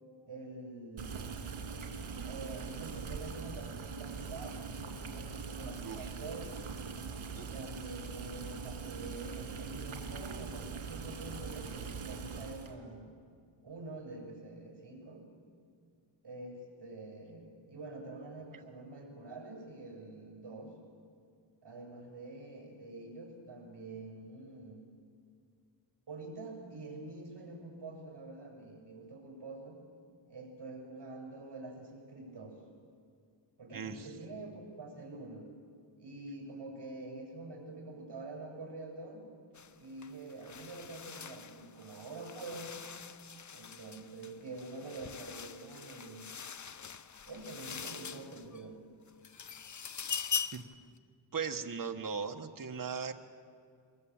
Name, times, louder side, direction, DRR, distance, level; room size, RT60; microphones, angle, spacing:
voice 1, 0.2-1.4 2.2-6.6 7.5-13.2 13.6-15.3 16.2-20.7 21.6-24.9 26.1-29.8 30.3-32.6 33.6-35.5 36.0-39.3 39.8-42.8 43.5-46.4 47.2-48.9, right 2 dB, 60° right, 0 dB, 6.7 m, -46 dB
Boiling, 1.0-12.7, right 5 dB, 90° right, 2.2 m, -42 dB
voice 2, 33.7-34.1 50.5-50.6 51.3-53.1, right 6 dB, 45° right, 5 dB, 1.3 m, -38 dB
sound 1, 39.6-39.7 40.0-48.7 49.1-50.8, left 6 dB, 40° left, 0.7 m, -42 dB
23.0 x 22.0 x 8.8 m, 2.3 s
wide cardioid pair, 145°, 47 cm